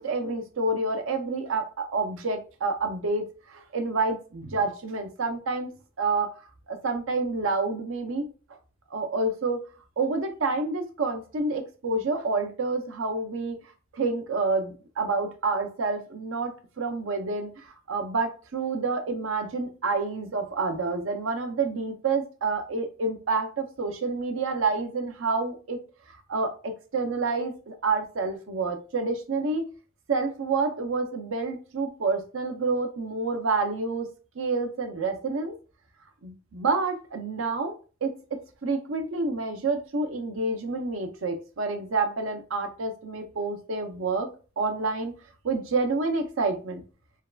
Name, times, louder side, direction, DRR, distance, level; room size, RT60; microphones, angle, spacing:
voice 1, 0.0-5.7 6.0-6.3 6.7-8.3 8.9-9.6 10.0-13.6 13.9-25.8 26.1-29.7 30.1-34.1 34.4-35.5 36.2-37.8 38.0-44.3 44.6-45.1 45.4-46.8, right 3 dB, 75° right, 6 dB, 0.6 m, -28 dB
3.5 x 2.2 x 2.2 m, 0.35 s
head